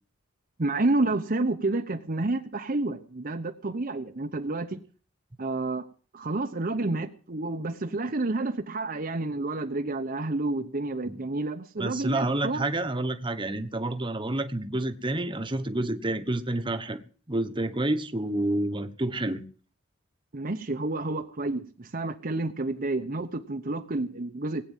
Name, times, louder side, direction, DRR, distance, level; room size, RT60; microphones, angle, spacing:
voice 1, 0.6-4.8 5.4-5.8 6.1-12.6 20.3-24.7, right 2 dB, 40° right, 0.9 m, -29 dB
voice 2, 11.8-17.0 17.3-19.4, right 1 dB, 25° right, 1.2 m, -29 dB
19.0 x 8.8 x 7.3 m
head